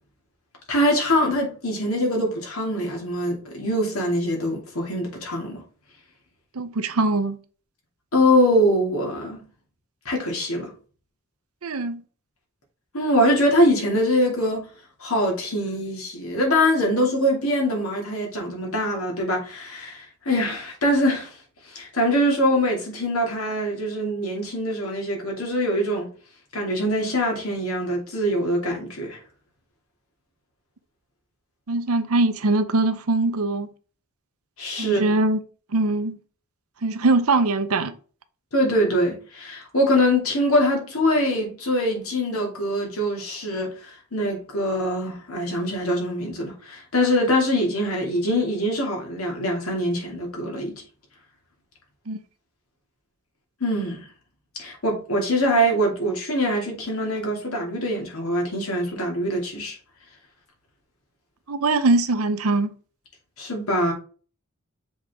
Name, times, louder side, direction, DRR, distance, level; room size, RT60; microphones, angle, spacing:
voice 1, 0.7-5.6 8.1-9.4 10.0-10.7 12.9-14.7 15.0-21.3 21.7-26.1 26.5-29.2 34.6-35.1 38.5-50.8 53.6-54.1 54.6-59.8 63.4-63.9, equal, 75° left, 2.5 m, -23 dB
voice 2, 6.5-7.4 11.6-12.0 31.7-33.7 34.8-35.4 35.7-36.2 36.8-37.9 52.1-52.2 61.5-62.7, right 2 dB, 90° right, 0.8 m, -22 dB
7.2 x 4.0 x 3.6 m
head